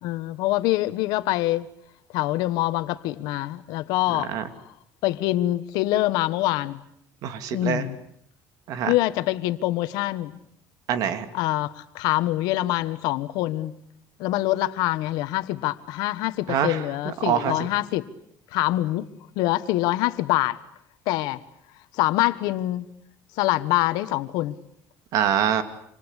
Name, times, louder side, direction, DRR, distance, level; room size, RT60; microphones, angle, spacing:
voice 1, 0.0-1.7 2.1-4.3 5.0-6.8 7.5-8.0 8.8-10.4 11.3-13.7 14.2-18.1 18.5-19.0 19.3-20.6 21.1-21.4 21.9-22.9 23.4-24.6, left 16 dB, 80° left, 1.4 m, -25 dB
voice 2, 4.1-4.4 7.2-7.9 8.7-8.9 10.9-11.2 16.5-16.8 17.0-17.6 25.1-25.6, right 9 dB, 65° right, 2.8 m, -24 dB
27.0 x 26.5 x 8.3 m
cardioid pair, 140°, 7 cm